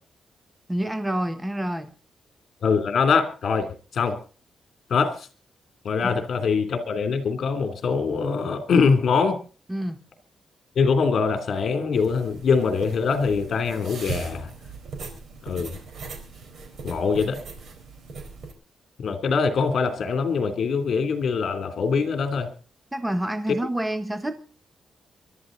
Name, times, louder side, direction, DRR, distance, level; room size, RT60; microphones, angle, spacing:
voice 1, 0.7-1.9 6.0-6.2 9.7-10.0 22.9-24.3, right 1 dB, 5° right, 9 dB, 1.0 m, -28 dB
voice 2, 2.6-3.7 3.9-4.2 4.9-5.2 5.8-9.4 10.8-14.5 15.4-15.8 16.8-17.4 19.0-22.5, left 5 dB, 55° left, 8 dB, 3.0 m, -23 dB
sound 1, 11.9-18.5, right 4 dB, 55° right, 4.3 m, -39 dB
23.5 x 12.5 x 4.0 m, 0.37 s
wide cardioid pair, 165°, 0 cm